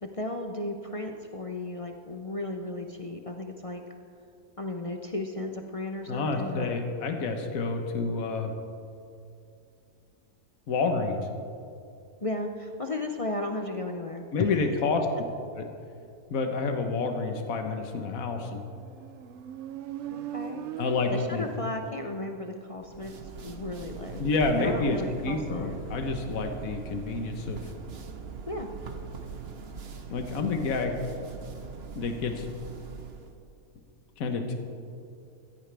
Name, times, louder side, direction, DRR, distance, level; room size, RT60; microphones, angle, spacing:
voice 1, 0.0-3.8 4.6-6.7 12.2-14.6 20.1-20.7 21.1-23.1 23.4-24.2 24.6-25.8 28.5-28.7, left 2 dB, 35° left, 4 dB, 0.5 m, -35 dB
voice 2, 6.1-8.5 10.7-11.3 14.3-15.1 15.6-15.7 16.3-18.6 20.8-21.4 24.2-25.0 25.2-27.6 30.1-31.0 31.9-32.5 34.2-34.5, left 3 dB, 75° left, 5 dB, 1.5 m, -29 dB
Motorcycle, 18.8-22.4, right 10 dB, 65° right, 0.8 m, -40 dB
sound 1, 22.8-33.3, right 5 dB, 50° right, 1.1 m, -41 dB
16.0 x 14.0 x 3.4 m, 2.5 s
omnidirectional pair, 1.5 m